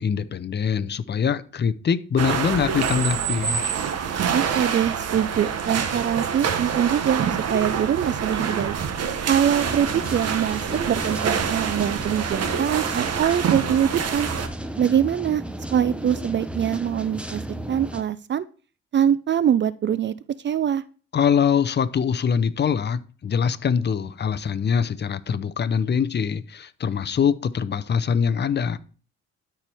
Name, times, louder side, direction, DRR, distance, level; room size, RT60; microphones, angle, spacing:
voice 1, 0.0-3.6 21.1-28.8, left 7 dB, 35° left, 0.7 m, -23 dB
sound 1, 2.2-14.5, right 7 dB, 55° right, 1.1 m, -26 dB
voice 2, 4.3-7.2 7.5-8.8 9.3-14.3 14.8-15.4 15.7-17.4 17.7-18.4 18.9-20.2 20.4-20.8, right 9 dB, 40° right, 0.4 m, -23 dB
sound 2, 9.4-18.0, right 1 dB, 5° right, 0.8 m, -34 dB
13.0 x 4.6 x 3.5 m
cardioid pair, 90°, 30 cm